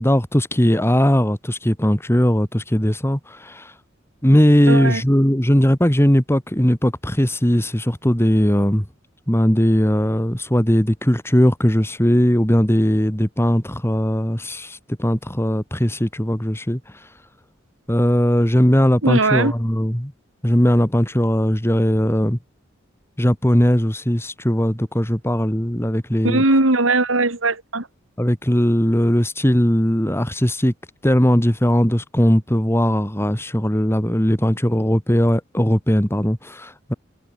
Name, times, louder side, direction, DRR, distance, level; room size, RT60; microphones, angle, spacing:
voice 1, 0.0-3.7 4.2-8.8 9.3-16.8 17.9-20.1 20.4-22.4 23.2-26.4 28.2-30.7 31.0-36.9, equal, 15° left, 2.9 m, -18 dB
voice 2, 4.7-5.0 19.0-19.5 26.2-27.9, right 2 dB, 85° right, 2.9 m, -19 dB
head